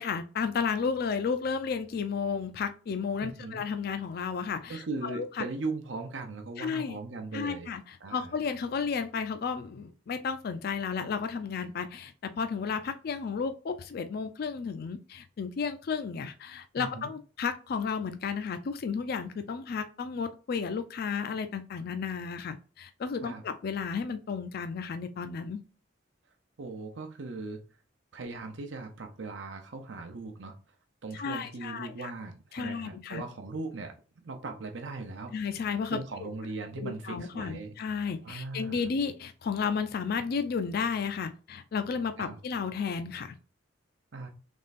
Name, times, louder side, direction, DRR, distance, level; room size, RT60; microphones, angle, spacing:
voice 1, 0.0-5.4 6.6-7.0 7.3-25.6 31.1-32.1 32.5-33.2 35.3-36.3 36.8-43.4, left 5 dB, 55° left, 0.4 m, -33 dB
voice 2, 3.2-3.6 4.7-7.7 8.0-8.3 16.8-17.1 23.2-23.4 26.6-27.6 28.1-30.5 31.0-33.9 34.2-35.3 35.9-37.8 38.2-38.8 42.2-42.4 44.1-44.3, right 3 dB, 80° right, 0.7 m, -38 dB
3.5 x 3.2 x 4.1 m
head